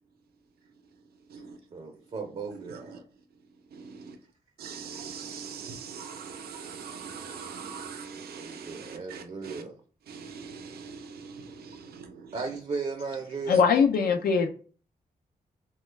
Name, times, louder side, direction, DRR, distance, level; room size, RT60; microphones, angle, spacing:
voice 1, 1.7-3.0 8.4-9.8 12.3-13.6, right 4 dB, 45° right, 0.5 m, -36 dB
voice 2, 3.7-4.1 4.6-9.6 10.1-12.1, right 6 dB, 85° right, 0.5 m, -41 dB
voice 3, 13.5-14.5, left 6 dB, 80° left, 0.6 m, -21 dB
3.0 x 2.2 x 3.2 m
cardioid pair, 80°, 16 cm